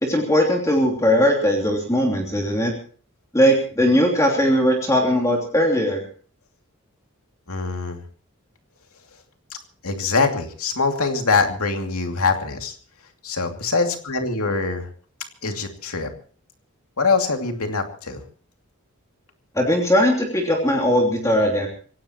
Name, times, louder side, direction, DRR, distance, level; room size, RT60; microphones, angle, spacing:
voice 1, 0.0-2.7 3.3-6.0 19.5-21.7, equal, 15° left, 1 dB, 3.0 m, -19 dB
voice 2, 7.5-8.0 9.5-9.6 9.8-12.7 13.2-14.9 15.4-16.1 17.0-18.2, left 4 dB, 85° left, 4 dB, 2.6 m, -23 dB
25.5 x 17.0 x 3.0 m, 0.42 s
head